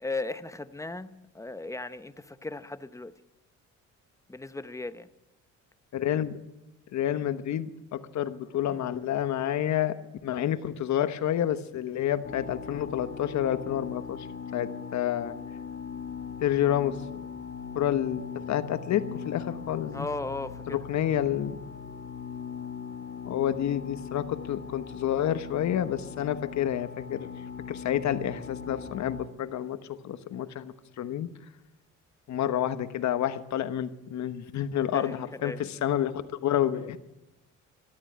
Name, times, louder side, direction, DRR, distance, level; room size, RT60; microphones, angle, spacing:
voice 1, 0.0-3.1 4.3-5.1 19.9-20.8 34.9-35.7, left 2 dB, 10° left, 0.8 m, -36 dB
voice 2, 5.9-6.4 6.9-10.0 10.2-14.3 14.5-15.4 16.4-17.0 17.7-20.1 20.7-21.6 23.2-27.3 27.7-31.3 32.3-36.1 36.4-37.0, left 11 dB, 65° left, 1.1 m, -29 dB
sound 1, 12.2-29.3, left 6 dB, 45° left, 1.1 m, -40 dB
13.5 x 12.0 x 9.0 m
cardioid pair, 90°, 30 cm